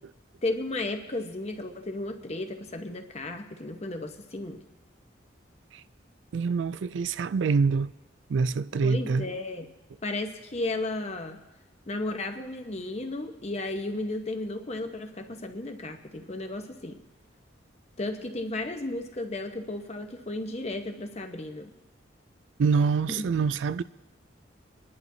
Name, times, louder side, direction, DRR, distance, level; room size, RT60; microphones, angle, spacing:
voice 1, 0.4-4.6 8.8-9.7 10.0-11.4 11.9-17.0 18.0-21.7 23.1-23.3, left 2 dB, 35° left, 0.9 m, -34 dB
voice 2, 6.3-7.9 8.3-9.3 22.6-23.8, right 5 dB, 80° right, 0.4 m, -25 dB
27.0 x 11.0 x 2.7 m
head